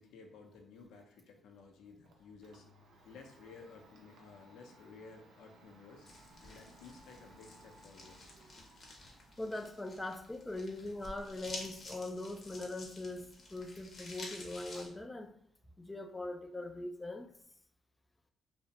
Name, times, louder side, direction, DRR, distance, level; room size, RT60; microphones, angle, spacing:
voice 1, 0.0-2.7 3.0-6.1 6.4-8.2, left 4 dB, 80° left, 0.5 m, -55 dB
Domestic sounds home sounds, 1.6-17.4, right 1 dB, 85° right, 0.5 m, -64 dB
sound 1, 6.0-14.9, left 2 dB, 45° left, 0.7 m, -51 dB
voice 2, 9.4-15.3 15.8-17.3, left 2 dB, 15° left, 0.3 m, -41 dB
2.5 x 2.0 x 2.8 m
cardioid pair, 90°, 0 cm